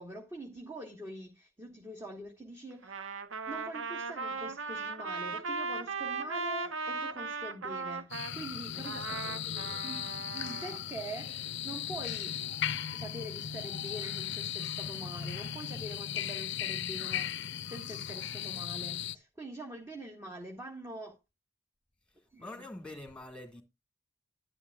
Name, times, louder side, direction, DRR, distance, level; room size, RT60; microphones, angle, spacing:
voice 1, 0.0-3.1 3.5-9.0 9.8-12.4 12.9-21.2 22.3-22.5, right 1 dB, 15° right, 1.6 m, -44 dB
Trumpet, 2.8-8.3 8.8-10.8, right 4 dB, 70° right, 0.9 m, -37 dB
sound 1, 8.1-19.2, left 9 dB, 60° left, 0.6 m, -37 dB
voice 2, 8.8-9.8 22.4-23.6, left 2 dB, 5° left, 1.9 m, -47 dB
11.5 x 10.5 x 2.4 m
head